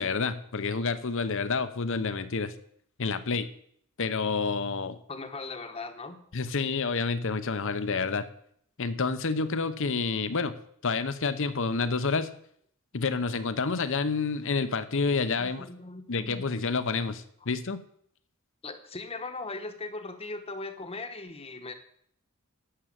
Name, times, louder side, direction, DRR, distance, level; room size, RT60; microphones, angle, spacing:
voice 1, 0.0-2.5 3.0-3.5 4.0-5.0 6.3-8.2 8.8-10.6 10.8-12.3 12.9-15.7 16.1-17.8, left 4 dB, 60° left, 12 dB, 0.8 m, -29 dB
voice 2, 5.1-6.2 15.4-16.4 18.6-21.7, left 3 dB, 25° left, 7 dB, 1.1 m, -39 dB
11.5 x 6.8 x 7.5 m, 0.67 s
head